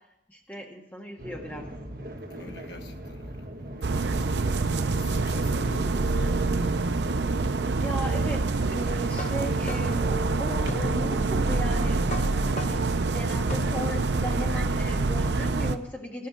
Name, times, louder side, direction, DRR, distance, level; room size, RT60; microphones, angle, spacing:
voice 1, 0.3-1.7 7.7-12.7 13.0-16.3, equal, 10° left, 0 dB, 1.7 m, -37 dB
sound 1, 1.2-7.8, equal, 50° right, 1.6 m, -40 dB
voice 2, 2.3-3.5 5.0-6.8, left 2 dB, 75° left, 3 dB, 1.4 m, -45 dB
sound 2, 3.8-15.8, right 3 dB, 80° right, 0.6 m, -26 dB
sound 3, 9.1-14.2, left 1 dB, 40° left, 0.9 m, -38 dB
13.5 x 6.1 x 8.9 m, 0.84 s
head